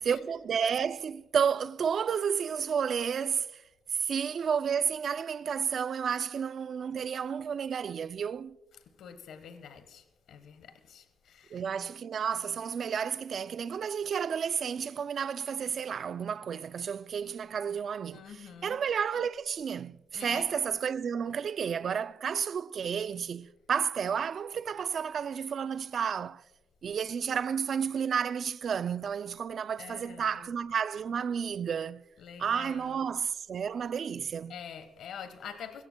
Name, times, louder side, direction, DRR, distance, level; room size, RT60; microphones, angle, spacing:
voice 1, 0.0-3.6 3.9-8.6 11.5-26.4 26.8-32.0 32.4-34.6, right 7 dB, 55° right, 0.3 m, -31 dB
voice 2, 9.0-11.6 18.1-18.8 20.1-20.5 29.8-30.4 32.2-33.0 34.5-35.9, left 7 dB, 75° left, 1.3 m, -46 dB
22.0 x 17.0 x 2.2 m
cardioid pair, 90°, 0 cm